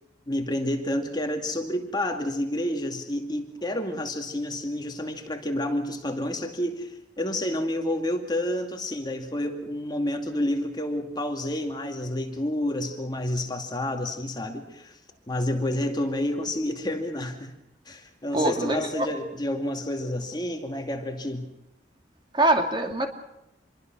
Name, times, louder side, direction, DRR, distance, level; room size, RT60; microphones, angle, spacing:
voice 1, 0.3-15.0 15.3-17.5 17.9-21.5, left 1 dB, 20° left, 4 dB, 2.4 m, -29 dB
voice 2, 18.3-19.1 22.3-23.1, right 1 dB, 25° right, 4 dB, 2.6 m, -23 dB
27.5 x 22.5 x 6.2 m, 0.87 s
head